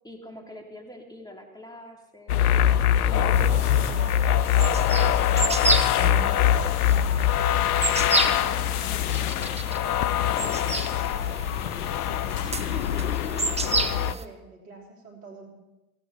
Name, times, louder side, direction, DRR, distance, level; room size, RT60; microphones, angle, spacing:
voice 1, 0.0-7.5 8.1-9.7, equal, 10° left, 2 dB, 3.4 m, -46 dB
sound 1, 2.3-14.1, left 10 dB, 85° left, 0.6 m, -23 dB
sound 2, 2.7-13.1, left 4 dB, 60° left, 5.1 m, -43 dB
sound 3, 3.3-14.2, right 3 dB, 15° right, 1.2 m, -31 dB
voice 2, 12.5-15.5, right 3 dB, 80° right, 0 dB, 3.3 m, -46 dB
17.0 x 16.0 x 4.3 m, 0.99 s
hypercardioid pair, 65°, 44 cm